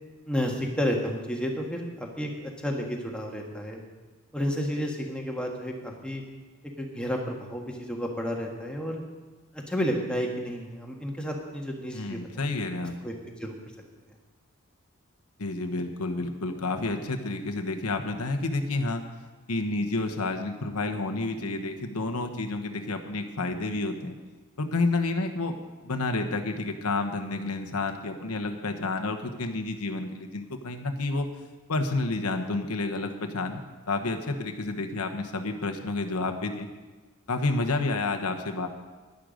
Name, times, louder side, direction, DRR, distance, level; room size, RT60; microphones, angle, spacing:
voice 1, 0.3-3.8 4.3-6.2 6.8-9.0 9.7-12.4 13.0-13.1 13.4-13.5, equal, 5° left, 0 dB, 1.6 m, -31 dB
voice 2, 11.9-13.0 15.4-19.1 19.5-24.1 24.6-25.5 25.8-31.3 31.7-33.6 33.9-36.7 37.3-38.7, left 2 dB, 90° left, 5 dB, 1.2 m, -30 dB
11.5 x 11.0 x 5.2 m, 1.3 s
head